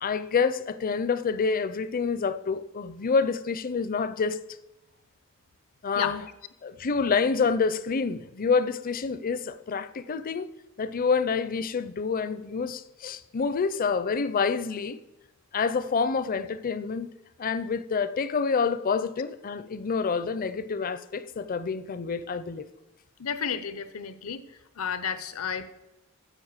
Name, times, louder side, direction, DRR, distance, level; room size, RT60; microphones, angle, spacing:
voice 1, 0.0-4.4 5.8-6.2 6.6-10.5 10.8-15.0 15.5-17.1 17.4-22.7, left 5 dB, 40° left, 0.5 m, -27 dB
voice 2, 23.2-24.4 24.8-25.6, left 7 dB, 80° left, 0.8 m, -31 dB
9.8 x 7.7 x 6.5 m
head